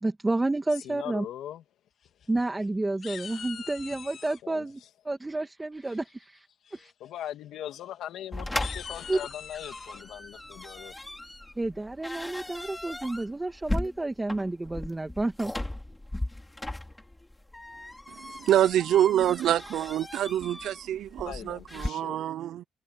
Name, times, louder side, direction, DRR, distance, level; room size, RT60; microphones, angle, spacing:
voice 1, 0.0-1.3 2.3-6.5 6.7-6.9 9.1-9.2 11.6-15.5, right 2 dB, 15° right, 2.2 m, -30 dB
voice 2, 0.8-1.6 4.4-4.6 7.0-10.9 21.2-22.2, left 11 dB, 80° left, 2.6 m, -40 dB
sound 1, 2.0-2.7 3.0-4.4 5.8-6.2 6.7-6.9 7.2-7.3 7.7-7.8 8.4-10.0, left 8 dB, 60° left, 1.8 m, -43 dB
sound 2, 8.3-21.9, left 1 dB, 10° left, 3.3 m, -37 dB
voice 3, 18.4-22.6, right 11 dB, 75° right, 0.5 m, -26 dB
open air
cardioid pair, 90°, 0 cm